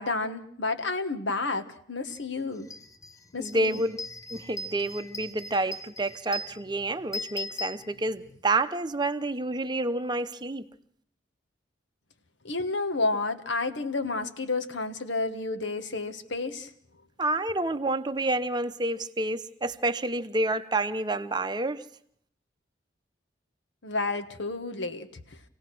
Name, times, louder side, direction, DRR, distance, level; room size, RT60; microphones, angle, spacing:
voice 1, 0.0-2.7 3.3-3.8 12.4-16.7 23.8-25.2, left 3 dB, 70° left, 10 dB, 1.4 m, -30 dB
sound 1, 2.1-2.2 2.6-8.4, left 2 dB, 15° left, 0.8 m, -40 dB
voice 2, 3.4-4.0 4.3-10.7 17.2-21.8, right 2 dB, 20° right, 9 dB, 0.8 m, -29 dB
26.5 x 17.5 x 6.1 m, 0.63 s
head